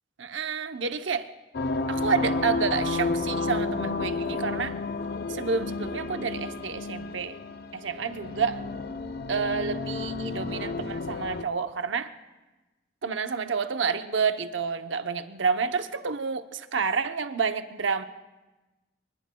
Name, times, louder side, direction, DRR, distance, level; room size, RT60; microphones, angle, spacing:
voice 1, 0.2-1.3 1.9-4.8 5.3-7.4 7.7-8.6 9.3-12.1 13.0-18.0, right 5 dB, 80° right, 9 dB, 0.8 m, -29 dB
sound 1, 1.5-11.4, left 3 dB, 55° left, 0.6 m, -31 dB
26.0 x 23.5 x 2.3 m, 1.1 s
head